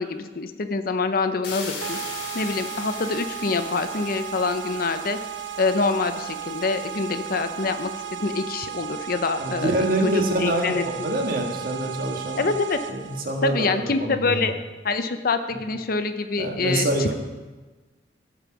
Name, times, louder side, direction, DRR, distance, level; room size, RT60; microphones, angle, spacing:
voice 1, 0.0-2.0 2.3-5.2 5.6-9.7 10.1-10.8 12.4-12.8 13.4-14.5 14.8-17.1, left 4 dB, 50° left, 9 dB, 0.6 m, -25 dB
sound 1, 1.4-8.3, left 2 dB, 80° left, 3.6 m, -40 dB
sound 2, 1.8-13.2, right 10 dB, 80° right, 0.6 m, -35 dB
voice 2, 9.4-12.5 12.9-14.5 15.5-15.6 16.4-17.1, right 1 dB, 50° right, 1 dB, 1.5 m, -26 dB
14.0 x 5.3 x 6.1 m, 1.2 s
head